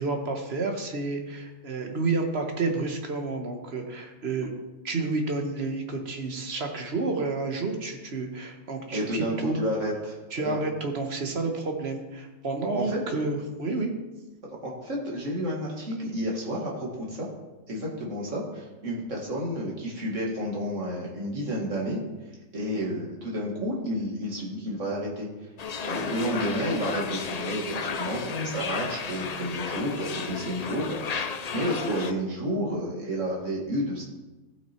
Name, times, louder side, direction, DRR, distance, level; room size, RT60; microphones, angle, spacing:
voice 1, 0.0-4.5 4.8-9.6 10.3-13.9, right 3 dB, 55° right, 4 dB, 1.5 m, -30 dB
voice 2, 8.9-10.6 12.7-13.0 14.6-17.3 17.7-22.0 22.5-25.3 25.8-31.3 31.5-34.0, equal, 70° right, -3 dB, 2.5 m, -31 dB
sound 1, 25.6-32.1, left 5 dB, 45° left, 0.5 m, -33 dB
15.0 x 6.3 x 4.5 m, 1.1 s
omnidirectional pair, 1.3 m